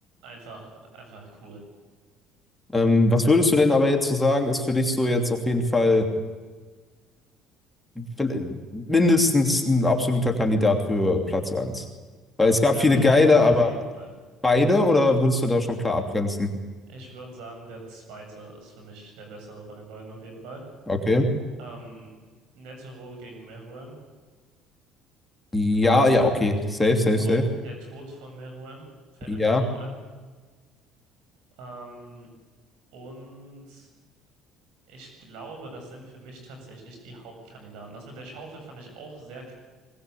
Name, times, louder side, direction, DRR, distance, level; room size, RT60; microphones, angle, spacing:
voice 1, 0.2-1.6 12.4-14.1 16.9-20.6 21.6-22.1 22.5-23.9 26.2-26.5 27.2-28.9 29.1-30.0 31.6-32.3 32.9-33.9 34.9-39.5, right 2 dB, 80° right, 3 dB, 7.9 m, -43 dB
voice 2, 2.7-6.1 8.0-11.9 12.4-13.7 14.4-16.5 20.9-21.3 25.5-27.4 29.3-29.6, left 2 dB, 10° left, 2 dB, 3.0 m, -21 dB
21.0 x 19.0 x 8.6 m, 1.4 s
supercardioid pair, 80°, 0 cm